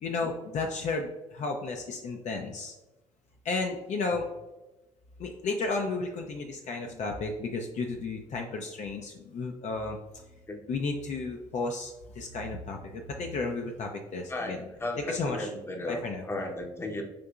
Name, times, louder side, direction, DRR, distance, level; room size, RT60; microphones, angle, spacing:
voice 1, 0.0-2.7 3.4-4.3 5.2-10.0 10.7-14.6 15.1-15.5 15.9-16.2, left 3 dB, 50° left, 3 dB, 0.5 m, -33 dB
voice 2, 14.3-17.0, left 1 dB, 15° left, 3 dB, 0.7 m, -35 dB
5.1 x 2.7 x 2.3 m, 1.0 s
hypercardioid pair, 55°, 16 cm